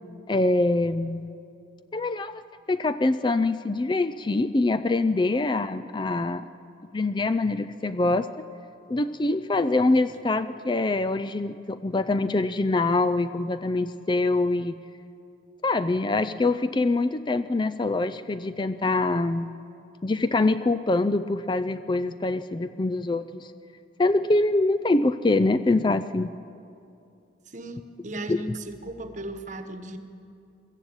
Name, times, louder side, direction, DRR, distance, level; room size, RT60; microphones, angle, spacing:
voice 1, 0.3-1.3 1.9-2.4 2.7-6.5 6.9-8.4 8.9-14.8 15.6-19.5 20.0-23.5 24.0-26.3 28.3-28.4, left 2 dB, 25° left, 11 dB, 0.4 m, -24 dB
voice 2, 27.5-30.0, right 1 dB, 40° right, 8 dB, 1.2 m, -36 dB
22.5 x 14.5 x 8.9 m, 2.6 s
head